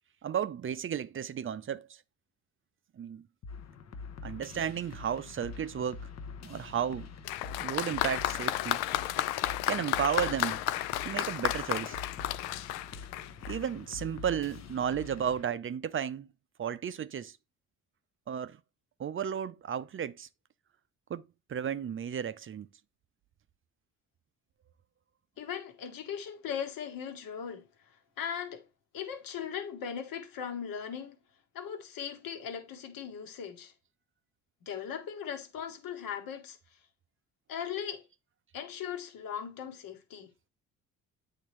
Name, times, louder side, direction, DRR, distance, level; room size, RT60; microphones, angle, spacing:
voice 1, 0.2-2.0 3.0-3.3 4.2-6.1 6.4-7.1 7.6-8.8 9.7-10.6 11.0-12.0 13.5-16.3 16.6-17.4 18.3-18.6 19.0-20.3 21.1-22.7, right 8 dB, 35° right, 0.5 m, -33 dB
sound 1, 3.4-15.4, left 4 dB, 45° left, 0.9 m, -45 dB
Applause, 7.3-13.7 14.6-14.7, left 15 dB, 75° left, 0.5 m, -32 dB
voice 2, 25.4-28.6 28.9-31.2 31.5-33.7 34.6-36.6 37.5-38.0 38.5-40.3, left 8 dB, 60° left, 1.5 m, -39 dB
8.5 x 3.5 x 3.2 m
hypercardioid pair, 60°, 38 cm